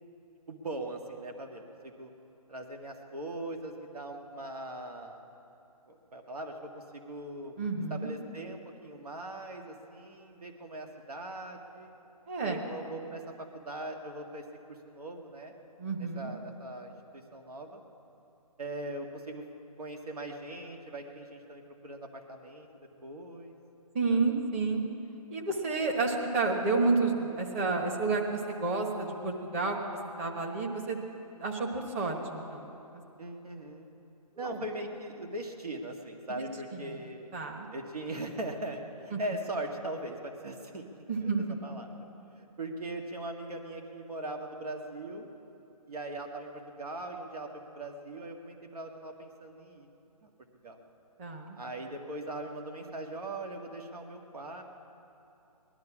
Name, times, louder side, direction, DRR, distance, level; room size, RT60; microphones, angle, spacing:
voice 1, 0.5-2.1 2.5-5.2 5.9-7.5 7.9-11.9 12.4-15.5 16.0-17.8 18.6-19.4 19.8-23.5 33.2-33.9 34.4-37.3 37.7-40.8 41.2-41.9 42.4-45.3 45.9-47.5 47.7-49.9 50.2-50.3 50.6-50.8 51.6-54.6, right 1 dB, 70° right, 3 dB, 1.8 m, -40 dB
voice 2, 7.6-8.1 12.3-12.7 15.8-16.3 23.9-24.8 25.3-29.8 30.2-31.0 31.4-32.7 34.4-34.6 36.4-36.5 36.7-37.0 37.3-37.7 39.1-39.2 41.1-41.6 51.2-51.6, right 3 dB, 20° right, 1 dB, 1.3 m, -30 dB
19.5 x 12.0 x 6.0 m, 2.9 s
hypercardioid pair, 160°, 20 cm